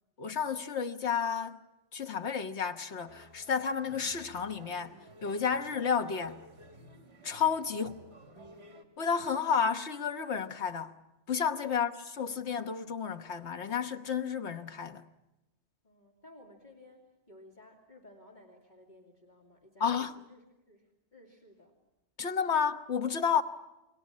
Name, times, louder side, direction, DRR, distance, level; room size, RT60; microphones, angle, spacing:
voice 1, 0.2-1.6 1.9-6.4 7.2-7.9 9.0-10.9 11.3-15.0 19.8-20.2 22.2-23.4, left 7 dB, 70° left, 1.5 m, -31 dB
sound 1, 3.1-8.8, right 1 dB, 65° right, 2.7 m, -54 dB
voice 2, 7.7-8.2 15.8-21.8, left 1 dB, 40° left, 3.0 m, -57 dB
29.5 x 22.0 x 7.4 m
omnidirectional pair, 1.2 m